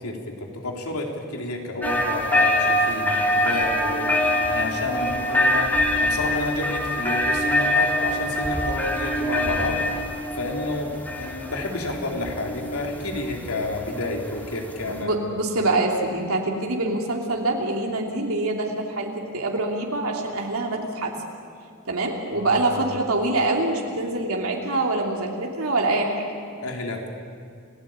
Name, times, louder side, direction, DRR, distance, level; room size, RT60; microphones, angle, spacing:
voice 1, 0.0-9.8 10.4-15.1 22.3-22.9 26.6-27.1, left 2 dB, 85° left, 1 dB, 3.6 m, -30 dB
sound 1, 1.8-15.0, left 1 dB, 10° left, 2.4 m, -24 dB
voice 2, 14.9-21.1 21.9-26.2, right 2 dB, 75° right, 0 dB, 2.9 m, -25 dB
29.0 x 17.0 x 8.9 m, 2.3 s
head